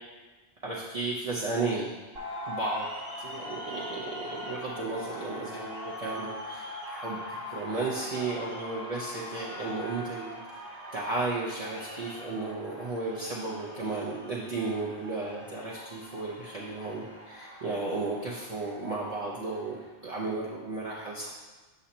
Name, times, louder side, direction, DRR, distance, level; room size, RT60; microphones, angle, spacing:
voice 1, 0.6-1.9 2.5-2.9 3.2-7.2 7.5-10.6 10.9-21.3, right 3 dB, 35° right, -6 dB, 0.9 m, -34 dB
sound 1, 2.1-19.9, left 1 dB, 55° right, 1.4 m, -42 dB
8.1 x 6.4 x 2.9 m, 1.3 s
omnidirectional pair, 1.2 m